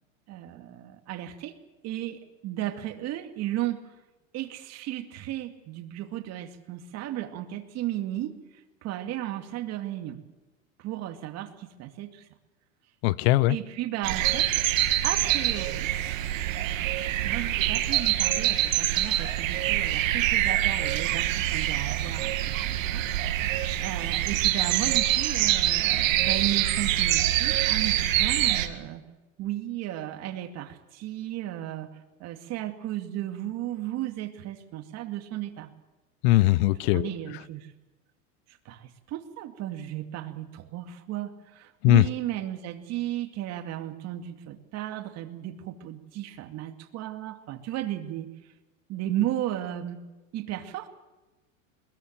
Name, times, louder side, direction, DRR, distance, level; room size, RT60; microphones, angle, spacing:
voice 1, 0.3-1.6 1.8-3.8 4.3-8.3 8.8-10.2 10.8-12.3 13.5-14.7 15.0-15.9 17.1-23.0 23.8-29.0 29.4-35.7 36.6-37.7 38.5-48.3 48.9-50.0 50.3-50.9, right 13 dB, 40° right, 7 dB, 2.4 m, -34 dB
voice 2, 13.0-13.6 36.2-37.1 41.8-42.0, left 16 dB, 55° left, 20 dB, 0.7 m, -20 dB
sound 1, 14.0-28.7, right 13 dB, 80° right, 2.1 m, -25 dB
21.5 x 21.5 x 7.5 m, 1.1 s
supercardioid pair, 135°, 39 cm